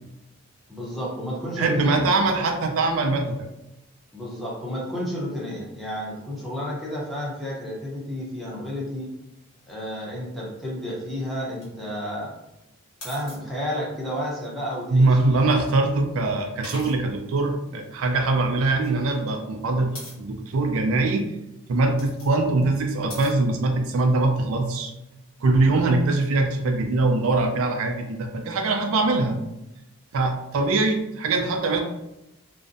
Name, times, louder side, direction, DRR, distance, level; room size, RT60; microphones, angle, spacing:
voice 1, 0.7-2.0 4.1-9.1 9.7-12.3 13.0-15.5, equal, ahead, -6 dB, 0.6 m, -31 dB
voice 2, 1.6-3.4 14.9-19.9 20.2-21.3 21.7-24.9 25.4-29.4 30.1-31.8, right 2 dB, 70° right, 4 dB, 0.3 m, -22 dB
sound 1, 11.5-11.6 13.0-13.4 14.8-15.4 16.6-17.0 18.8-19.2 19.9-20.2 21.7-22.3 23.1-23.3, left 2 dB, 75° left, 1.2 m, -41 dB
2.5 x 2.0 x 2.5 m, 0.90 s
head